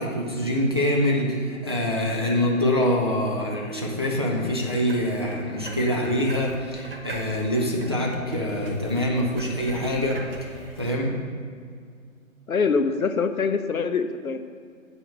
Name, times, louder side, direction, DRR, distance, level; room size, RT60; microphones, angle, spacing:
voice 1, 0.0-10.5 10.8-11.1, equal, 20° right, -2 dB, 0.5 m, -25 dB
sound 1, 4.4-11.0, right 2 dB, 40° right, 0.9 m, -41 dB
voice 2, 12.5-14.4, left 5 dB, 75° left, 9 dB, 0.7 m, -24 dB
8.0 x 4.5 x 6.3 m, 2.1 s
figure-of-eight pair, 140°, 42 cm